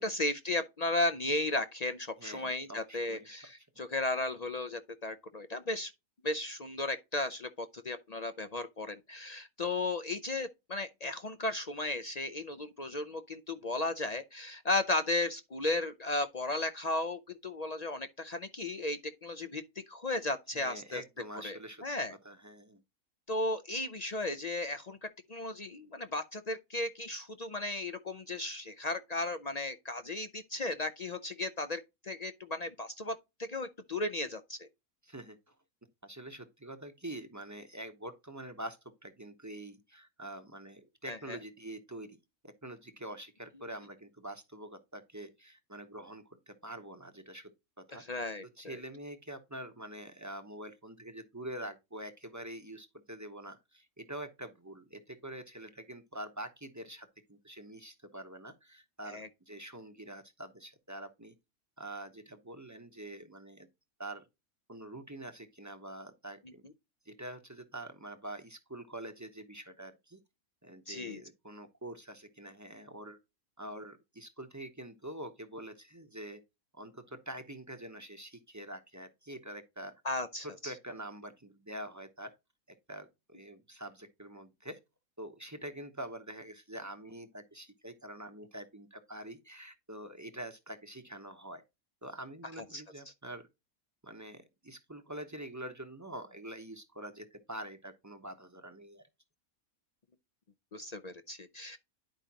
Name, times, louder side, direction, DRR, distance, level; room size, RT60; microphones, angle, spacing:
voice 1, 0.0-5.9 6.2-19.6 19.9-21.0 21.4-22.1 23.3-25.0 25.3-34.7 41.1-41.4 47.9-48.4 59.0-59.3 70.9-71.2 80.0-80.7 92.7-92.8 100.7-101.8, left 2 dB, 55° left, 0.4 m, -35 dB
voice 2, 2.2-3.4 3.8-3.9 20.5-21.8 22.2-22.8 35.0-35.5 36.0-42.2 42.4-47.5 47.8-48.3 48.6-61.3 61.8-63.7 64.0-64.2 64.7-66.6 67.0-70.2 70.6-73.2 73.6-76.4 76.7-79.9 80.4-82.3 82.9-84.8 85.2-91.6 92.0-93.4 94.0-99.0, right 1 dB, 15° right, 0.8 m, -45 dB
10.5 x 5.0 x 2.9 m
omnidirectional pair, 1.5 m